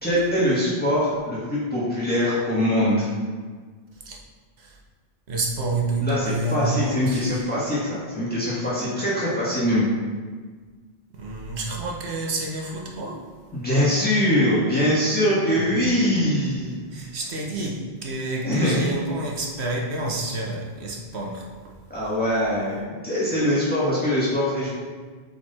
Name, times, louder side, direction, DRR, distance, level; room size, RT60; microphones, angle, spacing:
voice 1, 0.0-3.1 6.0-9.8 13.5-17.1 17.5-17.6 18.4-18.8 21.9-24.7, equal, 10° left, -9 dB, 1.7 m, -23 dB
voice 2, 5.3-7.4 11.1-13.3 15.5-15.9 16.9-21.7, right 2 dB, 85° right, -1 dB, 1.3 m, -29 dB
7.6 x 4.1 x 4.2 m, 1.5 s
omnidirectional pair, 1.1 m